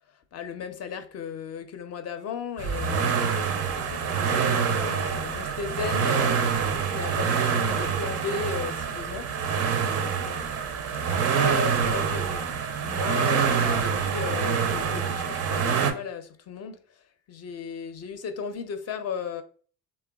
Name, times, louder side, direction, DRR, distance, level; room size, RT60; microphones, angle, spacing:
voice 1, 0.3-3.2 3.7-6.6 6.9-9.3 9.9-10.6 11.1-16.8 17.3-19.4, left 6 dB, 40° left, 0.5 m, -35 dB
sound 1, 2.6-15.9, right 6 dB, 40° right, 0.4 m, -26 dB
2.9 x 2.2 x 2.2 m
hypercardioid pair, 65°, 38 cm